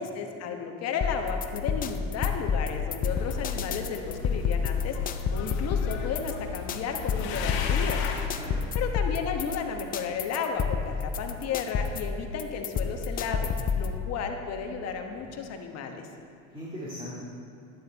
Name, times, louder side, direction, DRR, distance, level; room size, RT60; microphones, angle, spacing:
voice 1, 0.0-5.0 5.3-8.0 8.8-16.1, left 6 dB, 40° left, 4 dB, 1.2 m, -33 dB
sound 1, 1.0-14.0, left 6 dB, 20° left, 0.5 m, -29 dB
sound 2, 3.0-8.3, left 6 dB, 75° left, 1.4 m, -37 dB
voice 2, 7.2-7.7 8.3-8.7 15.1-15.4 16.5-17.2, equal, 15° right, -7 dB, 2.2 m, -41 dB
11.5 x 9.3 x 4.1 m, 2.7 s
supercardioid pair, 115°, 40 cm